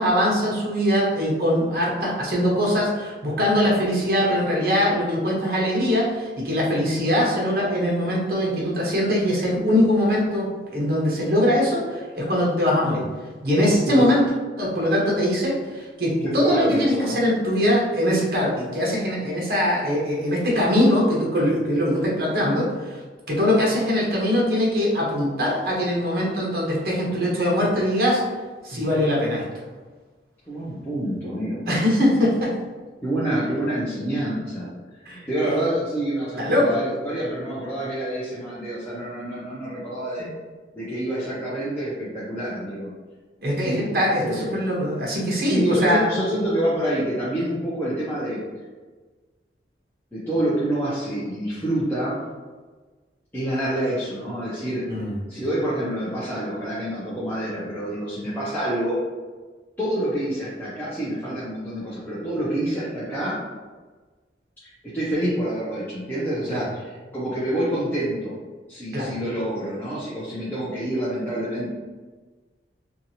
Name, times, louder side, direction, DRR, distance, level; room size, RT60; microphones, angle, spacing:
voice 1, 0.0-13.0 13.4-14.2 14.6-23.0 23.3-28.2 28.6-29.4 31.7-32.5 35.1-35.5 36.4-36.8 43.4-46.1 54.9-55.1 66.5-66.6 68.9-69.1, equal, 55° right, -3 dB, 0.8 m, -22 dB
voice 2, 16.4-17.2 30.5-31.6 33.0-34.7 35.0-40.3 40.7-42.9 43.6-43.9 44.2-44.5 45.5-48.4 50.1-52.2 53.3-54.8 55.3-59.0 59.8-63.4 64.6-68.3 68.7-71.7, right 1 dB, 10° left, -11 dB, 0.5 m, -27 dB
2.7 x 2.4 x 2.7 m, 1.3 s
head